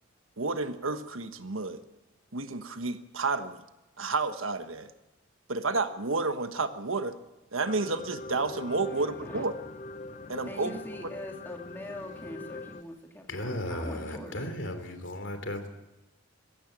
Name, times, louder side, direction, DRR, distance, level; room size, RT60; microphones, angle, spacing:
voice 1, 0.4-1.8 2.3-3.6 4.0-4.9 5.5-7.1 7.5-9.5 10.3-10.8, right 3 dB, 80° right, 9 dB, 1.3 m, -30 dB
sound 1, 7.6-12.8, left 2 dB, 35° left, 0.7 m, -42 dB
voice 2, 8.8-9.5 10.5-14.5, left 1 dB, 10° left, 1 dB, 2.7 m, -43 dB
voice 3, 13.3-15.7, left 1 dB, 65° left, 8 dB, 3.0 m, -35 dB
21.0 x 16.0 x 8.9 m, 1.0 s
head